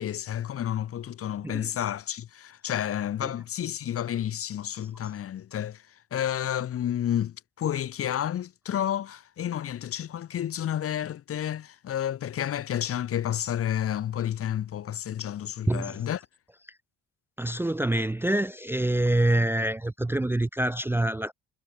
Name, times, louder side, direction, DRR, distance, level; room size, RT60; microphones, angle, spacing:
voice 1, 0.0-5.8 6.1-16.2, left 10 dB, 50° left, 0.7 m, -30 dB
voice 2, 15.7-16.0 17.4-21.3, right 1 dB, 10° right, 0.4 m, -26 dB
cardioid pair, 90°, 30 cm